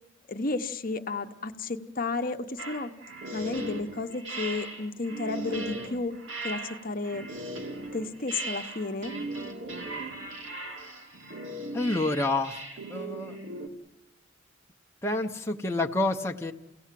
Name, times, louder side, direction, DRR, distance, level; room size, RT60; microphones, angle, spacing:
voice 1, 0.3-2.9 3.3-6.1 6.4-7.3 7.9-9.1, left 3 dB, 45° left, 6 dB, 1.0 m, -32 dB
sound 1, 2.6-13.7, right 2 dB, 70° right, 2.5 m, -38 dB
voice 2, 11.7-12.6 12.9-13.4 15.0-16.5, left 2 dB, 15° left, 2 dB, 0.9 m, -28 dB
29.5 x 17.0 x 7.6 m, 1.0 s
head